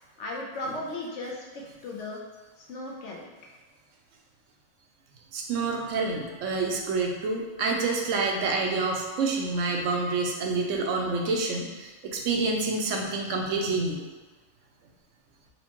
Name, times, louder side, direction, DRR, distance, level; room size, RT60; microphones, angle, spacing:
voice 1, 0.2-2.2 2.6-3.3, left 2 dB, 75° left, -2 dB, 1.0 m, -36 dB
voice 2, 5.3-14.0, right 3 dB, 85° right, 0 dB, 0.9 m, -28 dB
4.2 x 2.1 x 2.9 m, 1.2 s
omnidirectional pair, 1.3 m